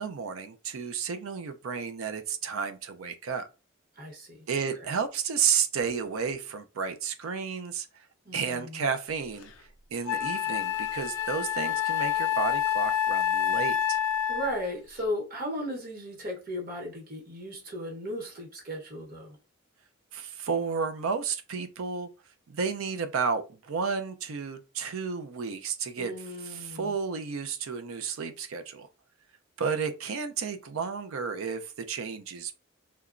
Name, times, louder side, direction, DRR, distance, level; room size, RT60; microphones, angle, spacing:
voice 1, 0.0-3.5 4.5-7.9 8.3-9.5 9.9-14.0 20.1-22.1 22.5-26.1 26.4-28.9 29.6-32.5, right 6 dB, 85° right, 0.5 m, -32 dB
voice 2, 4.0-4.5 8.2-8.8 14.3-19.4 26.0-26.9, equal, 45° right, 1.0 m, -36 dB
Wind instrument woodwind instrument, 9.4-9.5 10.1-14.7, left 10 dB, 80° left, 0.5 m, -28 dB
2.9 x 2.2 x 2.4 m
head